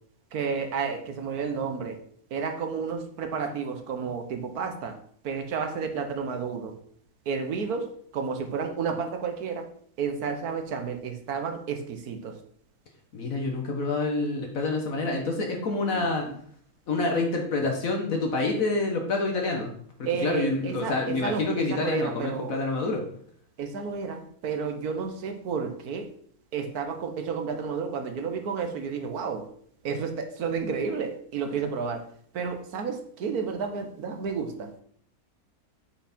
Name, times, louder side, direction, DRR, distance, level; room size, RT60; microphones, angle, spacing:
voice 1, 0.3-2.0 2.3-4.9 5.2-6.7 7.3-7.9 8.1-9.7 10.0-12.3 15.9-16.3 20.0-22.5 23.6-26.1 26.5-29.5 29.8-32.0 32.3-34.7, right 5 dB, 85° right, 6 dB, 1.6 m, -31 dB
voice 2, 13.1-16.3 16.9-19.7 20.2-23.0, left 3 dB, 65° left, 2 dB, 1.6 m, -27 dB
8.0 x 5.9 x 4.3 m, 0.62 s
omnidirectional pair, 1.6 m